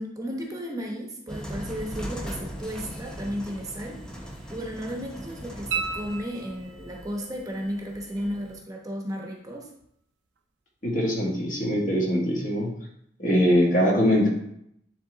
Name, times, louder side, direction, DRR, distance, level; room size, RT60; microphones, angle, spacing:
voice 1, 0.0-9.7, equal, 20° right, 0 dB, 1.0 m, -34 dB
sound 1, 1.3-8.5, equal, 5° left, 1.0 m, -39 dB
sound 2, 5.7-7.0 9.8-9.9, right 6 dB, 70° right, 0.5 m, -32 dB
voice 2, 10.8-12.7 13.2-14.3, equal, 45° left, -3 dB, 1.9 m, -22 dB
9.8 x 3.4 x 3.9 m, 0.75 s
head